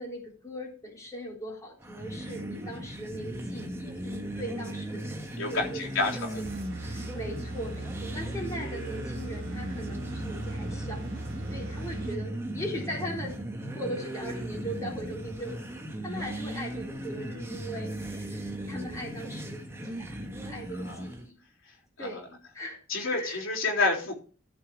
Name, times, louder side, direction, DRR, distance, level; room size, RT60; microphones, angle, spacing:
voice 1, 0.0-13.5 13.7-21.4 22.0-22.8 23.1-23.4, equal, 15° left, -3 dB, 3.7 m, -40 dB
sound 1, 1.8-21.3, right 1 dB, 15° right, 1.4 m, -37 dB
voice 2, 5.4-6.4 20.8-21.0 22.0-22.2 22.9-24.1, left 3 dB, 80° left, -4 dB, 3.7 m, -29 dB
sound 2, 6.4-12.4, right 2 dB, 65° right, 2.8 m, -40 dB
14.5 x 6.0 x 4.9 m, 0.39 s
head